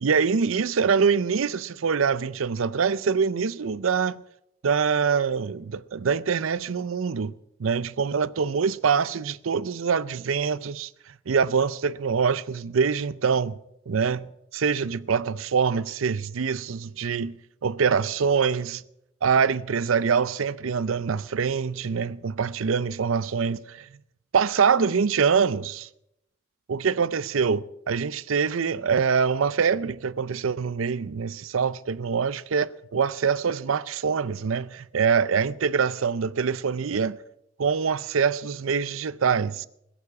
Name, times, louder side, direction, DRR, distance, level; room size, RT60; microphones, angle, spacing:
voice 1, 0.0-4.2 4.6-7.3 7.6-10.9 11.3-13.6 13.9-14.3 14.5-17.3 17.6-18.8 19.2-23.9 24.3-25.9 26.7-37.2 37.6-39.7, right 6 dB, 80° right, 0.5 m, -24 dB
21.0 x 7.2 x 8.4 m
head